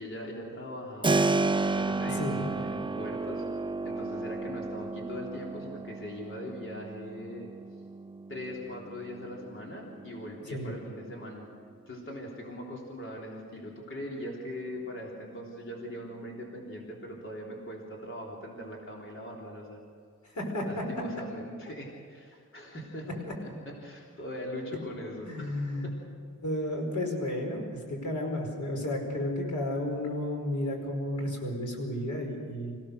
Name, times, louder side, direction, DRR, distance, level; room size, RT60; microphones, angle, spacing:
voice 1, 0.0-3.4 3.8-7.5 8.3-11.4 11.9-19.8 20.6-23.1 23.4-25.9, left 1 dB, 40° left, -2 dB, 3.5 m, -41 dB
Keyboard (musical), 1.0-11.7, right 3 dB, 15° right, 0.4 m, -33 dB
voice 2, 20.3-20.7 23.3-23.4 25.2-25.8 26.4-32.8, left 1 dB, 60° left, 1 dB, 4.8 m, -32 dB
27.0 x 16.5 x 6.6 m, 2.1 s
wide cardioid pair, 135°, 34 cm